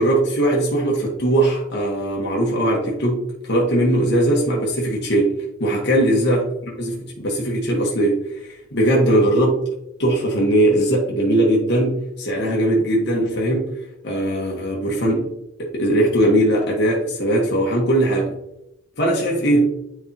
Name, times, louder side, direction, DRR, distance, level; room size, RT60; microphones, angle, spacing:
voice 1, 0.0-9.6 10.0-13.8 14.0-15.3 15.6-18.3 19.0-19.8, right 1 dB, 50° left, -3 dB, 1.4 m, -20 dB
9.7 x 4.7 x 2.9 m, 0.84 s
head